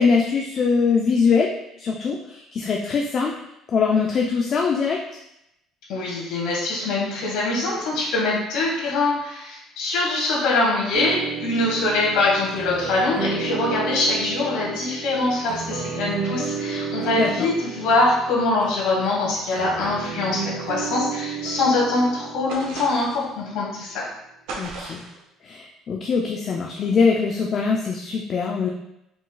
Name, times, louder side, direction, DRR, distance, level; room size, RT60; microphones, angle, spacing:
voice 1, 0.0-1.5 1.8-3.4 3.7-5.0 17.2-17.5 24.6-25.0 25.4-28.7, left 5 dB, 40° left, 0 dB, 0.4 m, -22 dB
voice 2, 5.9-24.0, left 2 dB, 80° left, -4 dB, 1.6 m, -23 dB
sound 1, 10.9-23.4, right 5 dB, 55° right, 1.3 m, -32 dB
sound 2, 22.5-23.3 24.5-25.2, right 3 dB, 80° right, 0.9 m, -35 dB
4.9 x 3.7 x 2.3 m, 0.84 s
cardioid pair, 125°, 0 cm